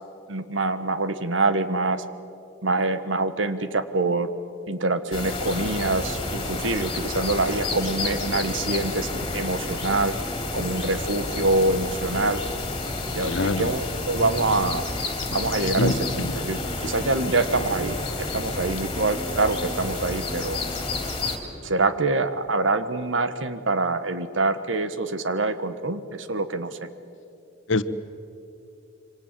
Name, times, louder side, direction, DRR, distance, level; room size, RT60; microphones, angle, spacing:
voice 1, 0.3-2.0 2.6-4.3 4.7-10.2 10.5-12.4 13.1-14.9 15.3-20.6 21.6-26.8, right 2 dB, 80° right, 11 dB, 1.4 m, -25 dB
sound 1, 5.1-21.4, left 2 dB, 25° left, 3.3 m, -30 dB
voice 2, 13.2-13.7 15.8-16.4 27.7-27.8, left 2 dB, 80° left, 12 dB, 1.1 m, -25 dB
27.0 x 25.0 x 7.6 m, 2.6 s
head